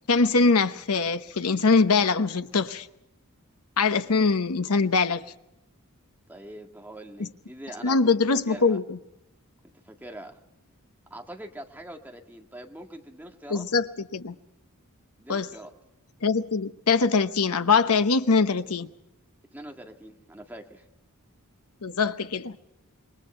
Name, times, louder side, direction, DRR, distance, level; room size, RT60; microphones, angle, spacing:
voice 1, 0.1-2.9 3.8-5.2 7.2-7.3 7.8-9.0 13.5-13.9 14.1-14.3 15.3-15.5 16.2-18.9 21.8-22.6, left 4 dB, 90° left, 1.0 m, -23 dB
voice 2, 6.3-8.8 9.6-10.4 11.1-13.7 15.2-15.7 19.5-20.8, right 1 dB, 10° right, 1.9 m, -43 dB
27.0 x 22.0 x 4.4 m
head